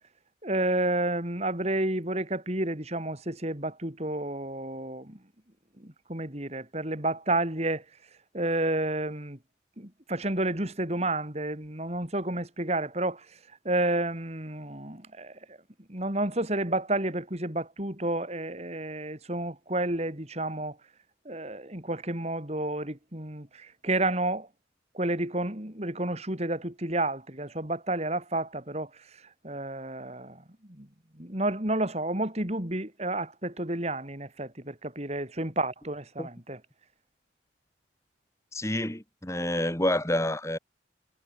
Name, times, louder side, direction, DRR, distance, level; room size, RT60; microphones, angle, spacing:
voice 1, 0.4-5.2 5.8-7.8 8.3-9.4 9.8-13.3 13.6-15.6 15.9-20.8 21.2-24.5 24.9-29.0 29.4-30.9 31.2-36.6, right 2 dB, 35° right, 3.3 m, -30 dB
voice 2, 38.5-40.6, left 1 dB, 15° left, 2.7 m, -28 dB
head